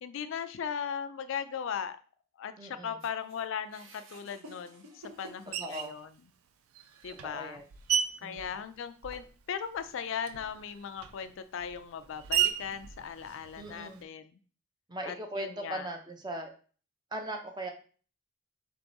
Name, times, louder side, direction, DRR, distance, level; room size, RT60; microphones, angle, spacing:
voice 1, 0.0-2.0 2.4-6.1 7.0-7.6 8.2-14.3 15.0-15.9, left 7 dB, 60° left, 11 dB, 0.3 m, -38 dB
voice 2, 2.6-3.0 5.6-6.0 7.2-7.6 8.2-8.6 13.6-14.0 14.9-16.5 17.1-17.7, right 1 dB, 20° right, 4 dB, 0.6 m, -39 dB
sound 1, 3.0-6.5 7.0-7.1 8.1-8.2, right 1 dB, 65° right, 0.8 m, -52 dB
Screech, 5.5-6.0 6.7-9.4 9.7-14.0, right 9 dB, 85° right, 0.4 m, -35 dB
3.5 x 3.4 x 3.9 m, 0.40 s
head